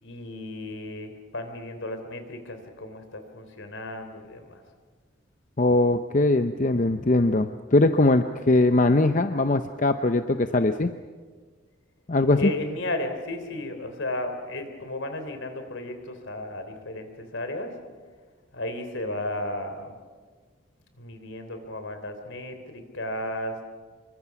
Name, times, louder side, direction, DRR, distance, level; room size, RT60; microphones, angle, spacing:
voice 1, 0.0-4.6 12.4-17.7 18.5-20.0 21.0-23.5, left 1 dB, 70° left, 7 dB, 3.5 m, -34 dB
voice 2, 5.6-10.9 12.1-12.5, left 2 dB, 40° left, 9 dB, 0.7 m, -21 dB
26.5 x 24.0 x 6.0 m, 1.5 s
head